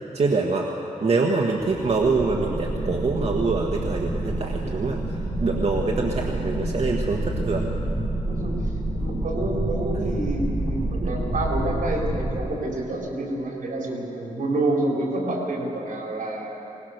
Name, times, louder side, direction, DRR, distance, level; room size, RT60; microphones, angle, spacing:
voice 1, 0.1-0.7 1.0-7.7 9.9-10.1 11.0-11.2, right 3 dB, 50° right, 0 dB, 1.4 m, -25 dB
sound 1, 1.5-12.3, right 1 dB, 5° left, 3.6 m, -28 dB
voice 2, 9.0-16.6, right 2 dB, 75° right, -1 dB, 4.5 m, -28 dB
21.5 x 20.0 x 6.6 m, 2.9 s
wide cardioid pair, 135°, 14 cm